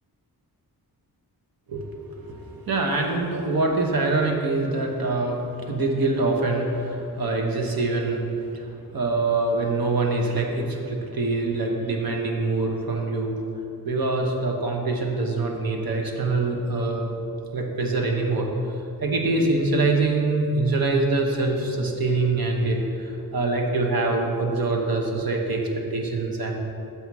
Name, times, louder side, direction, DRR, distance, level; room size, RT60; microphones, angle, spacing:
voice 1, 1.7-13.4 13.8-17.1 17.5-18.5 19.0-26.5, right 3 dB, 65° right, 1 dB, 1.1 m, -24 dB
7.1 x 5.7 x 4.7 m, 2.8 s
wide cardioid pair, 115°, 38 cm